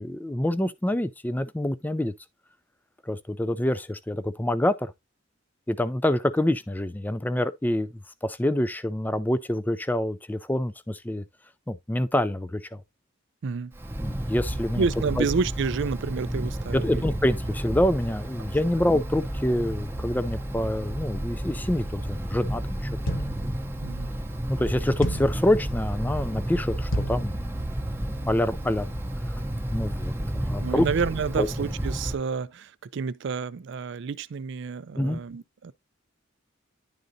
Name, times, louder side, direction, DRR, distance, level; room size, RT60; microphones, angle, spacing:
voice 1, 0.0-2.1 3.1-4.9 5.7-7.9 8.2-11.2 11.7-12.8 14.0-14.8 15.2-15.3 16.7-22.9 24.5-27.4 28.0-29.0 29.7-30.9 31.4-31.5 35.0-35.2, left 1 dB, 10° left, 0.4 m, -26 dB
Wind, 13.7-32.1, right 1 dB, 10° right, 0.7 m, -31 dB
voice 2, 14.8-17.1 18.8-18.9 23.8-24.1 30.6-35.7, right 5 dB, 60° right, 0.4 m, -29 dB
sound 1, 23.1-23.5 25.0-25.4 26.9-27.3, equal, 65° left, 1.2 m, -29 dB
11.0 x 3.8 x 2.7 m
head